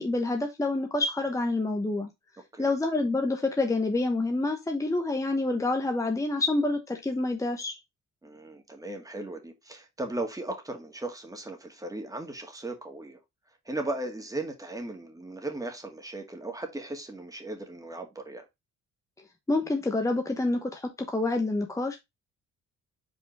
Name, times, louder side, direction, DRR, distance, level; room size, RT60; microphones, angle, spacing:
voice 1, 0.0-2.1 2.6-7.8 19.5-22.0, left 2 dB, 10° left, 1.0 m, -27 dB
voice 2, 8.2-13.2 13.7-18.4, right 2 dB, 10° right, 2.0 m, -37 dB
5.3 x 4.2 x 4.6 m
cardioid pair, 90°, 30 cm